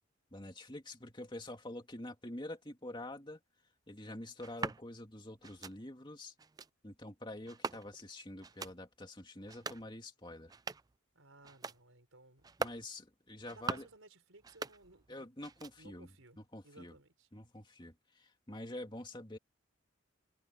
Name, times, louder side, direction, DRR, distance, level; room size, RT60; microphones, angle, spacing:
voice 1, 0.3-3.4 3.9-6.3 6.8-10.5 12.6-13.9 15.1-16.1 16.5-16.9 17.3-19.4, left 1 dB, 20° left, 2.7 m, -46 dB
sound 1, 4.4-4.8 5.4-5.8 6.4-6.7 7.5-8.1 8.4-8.8 9.4-9.9 10.4-11.0 11.4-11.8 12.4-12.8 13.4-14.0 14.4-15.1 15.4-16.0, right 4 dB, 20° right, 0.4 m, -42 dB
voice 2, 11.1-12.5 13.5-15.3 15.8-17.3, right 2 dB, 80° right, 4.8 m, -59 dB
head